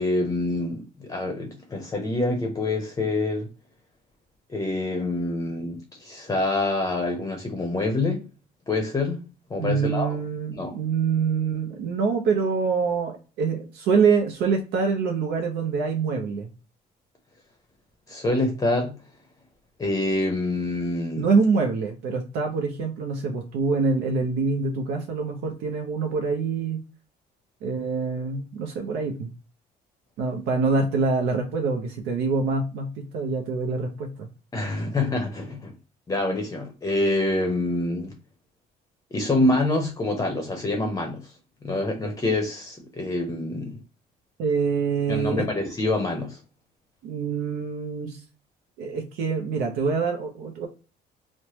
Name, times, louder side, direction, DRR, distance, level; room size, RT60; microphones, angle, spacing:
voice 1, 0.0-3.5 4.5-8.2 8.7-9.2 9.5-10.2 10.5-10.8 18.1-18.9 19.8-21.2 34.5-35.7 36.1-38.1 39.1-41.3 41.6-43.8 45.1-46.4, left 2 dB, 20° left, 0.6 m, -26 dB
voice 2, 9.6-16.5 21.2-26.8 27.6-29.3 30.2-34.3 44.4-45.4 47.0-48.2 48.8-50.7, right 4 dB, 85° right, 0.6 m, -25 dB
3.1 x 2.1 x 2.8 m
cardioid pair, 110°, 17 cm